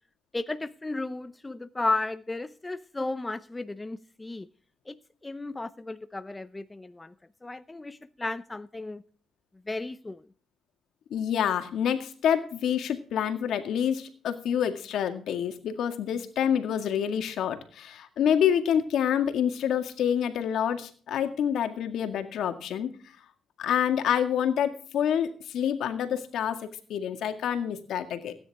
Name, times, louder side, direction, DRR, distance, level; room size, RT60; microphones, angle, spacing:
voice 1, 0.3-4.5 4.9-7.1 7.4-9.0 9.7-10.3, left 2 dB, 15° left, 0.7 m, -34 dB
voice 2, 11.1-22.9 23.6-28.4, left 9 dB, 75° left, 2.0 m, -27 dB
16.5 x 10.0 x 3.5 m
cardioid pair, 90°, 0 cm